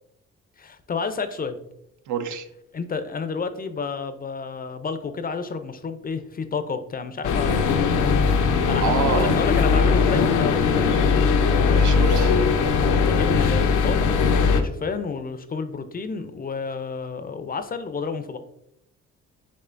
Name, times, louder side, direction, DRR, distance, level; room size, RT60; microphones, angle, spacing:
voice 1, 0.6-1.6 2.7-8.0 8.7-11.2 13.0-18.4, left 5 dB, 30° left, 10 dB, 0.4 m, -30 dB
voice 2, 2.1-2.5 8.3-9.3 11.7-12.4, right 7 dB, 75° right, 8 dB, 0.6 m, -28 dB
sound 1, 7.2-14.6, left 5 dB, 80° left, 0.6 m, -19 dB
5.5 x 3.6 x 2.5 m, 0.79 s
cardioid pair, 90°, 30 cm